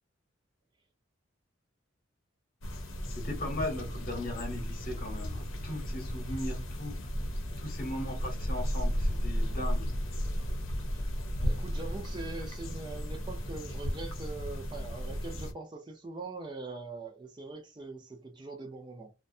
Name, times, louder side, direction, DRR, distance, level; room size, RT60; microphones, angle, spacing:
sound 1, 2.6-15.5, equal, 85° left, 0.7 m, -34 dB
voice 1, 3.1-7.0 7.6-9.9, left 1 dB, 45° left, 0.8 m, -38 dB
voice 2, 11.4-19.1, right 3 dB, 20° right, 0.4 m, -42 dB
2.4 x 2.2 x 2.6 m
head